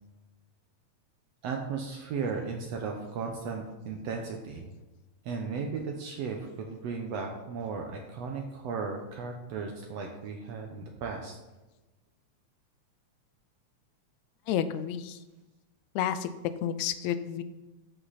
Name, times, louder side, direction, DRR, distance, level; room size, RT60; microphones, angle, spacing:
voice 1, 1.4-4.7 5.3-11.4, right 5 dB, 70° right, 2 dB, 1.8 m, -35 dB
voice 2, 14.5-15.2 16.0-16.3 16.6-17.4, left 9 dB, 80° left, 12 dB, 1.9 m, -30 dB
13.5 x 5.6 x 4.1 m, 1.1 s
omnidirectional pair, 3.4 m